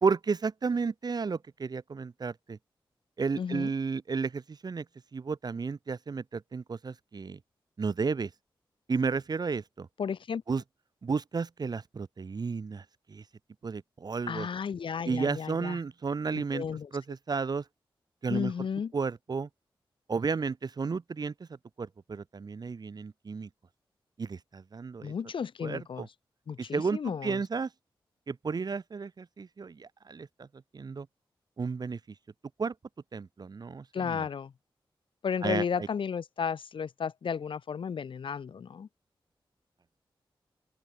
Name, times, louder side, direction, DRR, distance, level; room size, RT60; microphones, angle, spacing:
voice 1, 0.0-2.6 3.2-4.8 5.1-7.4 7.8-8.3 8.9-9.9 10.5-10.6 11.0-12.8 13.1-13.2 13.6-14.5 15.1-16.6 16.9-17.6 18.2-18.5 18.9-19.5 20.1-21.3 21.8-23.5 24.2-25.1 25.6-26.1 26.7-27.7 28.3-30.5 30.7-31.1 31.6-32.0 32.6-32.7 33.1-34.2 35.4-35.9, right 5 dB, 50° right, 0.9 m, -32 dB
voice 2, 3.4-3.7 10.0-10.4 14.3-15.8 16.3-16.9 18.3-18.9 25.0-26.1 26.5-27.4 33.9-34.5 35.2-38.9, left 6 dB, 70° left, 0.7 m, -33 dB
open air
wide cardioid pair, 90°, 9 cm